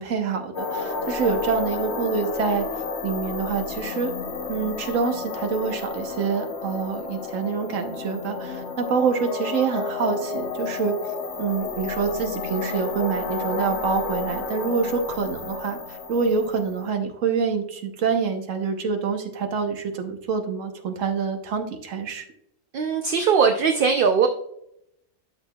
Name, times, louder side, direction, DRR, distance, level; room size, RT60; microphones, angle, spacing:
voice 1, 0.0-2.7 3.0-4.1 4.5-10.9 11.4-22.3, right 5 dB, 75° right, 5 dB, 1.4 m, -26 dB
sound 1, 0.5-16.9, left 4 dB, 60° left, 1.2 m, -31 dB
voice 2, 22.7-24.3, right 6 dB, 55° right, 6 dB, 0.6 m, -20 dB
12.0 x 6.1 x 2.3 m, 0.77 s
omnidirectional pair, 1.3 m